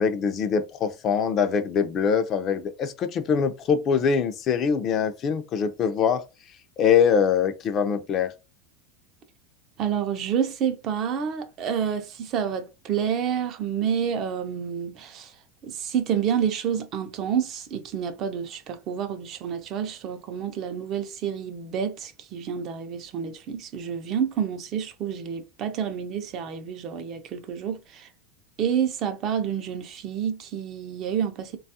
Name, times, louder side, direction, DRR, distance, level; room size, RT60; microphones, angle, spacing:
voice 1, 0.0-6.2 6.8-8.3, left 6 dB, 35° left, 0.4 m, -23 dB
voice 2, 9.8-15.3 15.6-28.1 28.6-31.6, right 8 dB, 40° right, 0.5 m, -29 dB
3.2 x 2.3 x 2.7 m
supercardioid pair, 140°, 0 cm